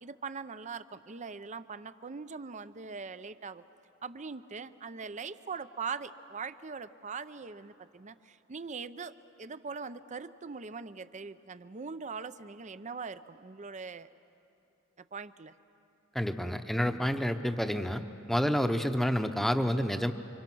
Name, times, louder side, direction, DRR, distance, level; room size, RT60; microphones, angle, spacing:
voice 1, 0.0-3.6 4.0-14.1 15.1-15.5, right 5 dB, 35° right, 13 dB, 0.6 m, -41 dB
voice 2, 16.1-18.0 18.3-20.1, equal, ahead, 7 dB, 0.9 m, -29 dB
30.0 x 25.5 x 6.2 m, 3.0 s
head